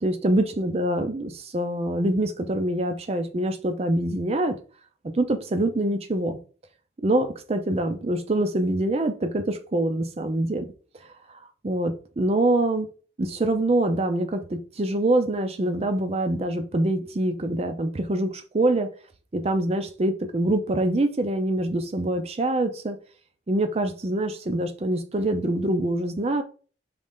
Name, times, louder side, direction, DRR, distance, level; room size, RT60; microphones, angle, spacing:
voice 1, 0.0-4.6 5.1-6.4 7.0-10.7 11.6-12.9 13.2-18.9 19.3-23.0 23.5-26.4, right 1 dB, 35° right, 0.5 m, -25 dB
3.9 x 3.1 x 3.6 m
head